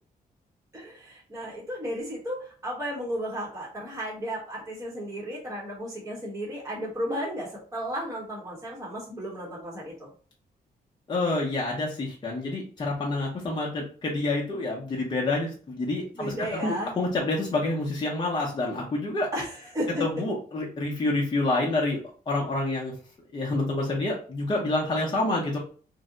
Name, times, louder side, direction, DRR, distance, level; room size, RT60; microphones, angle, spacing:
voice 1, 0.7-10.1 16.1-16.9 19.3-20.0, equal, 20° right, -4 dB, 0.9 m, -34 dB
voice 2, 11.1-19.3 20.0-22.0 22.3-22.9 23.3-25.6, left 2 dB, 30° left, -3 dB, 0.6 m, -28 dB
2.6 x 2.1 x 3.7 m, 0.41 s
wide cardioid pair, 135°, 16 cm